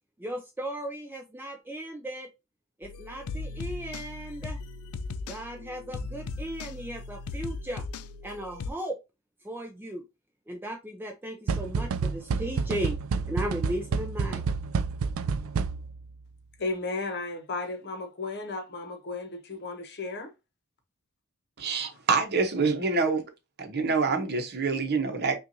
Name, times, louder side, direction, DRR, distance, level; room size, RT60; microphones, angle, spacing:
voice 1, 0.2-2.3 2.8-4.6 5.3-7.8 8.2-9.0 9.4-10.0 10.5-13.0 13.3-14.4, right 1 dB, 10° right, 0.5 m, -36 dB
sound 1, 2.8-8.7, left 3 dB, 90° left, 0.5 m, -38 dB
sound 2, 11.5-16.1, right 5 dB, 65° right, 0.4 m, -29 dB
voice 2, 16.6-20.3, left 3 dB, 50° left, 1.0 m, -34 dB
voice 3, 21.6-23.2 23.6-25.4, right 4 dB, 50° right, 0.9 m, -26 dB
5.5 x 2.5 x 2.7 m
head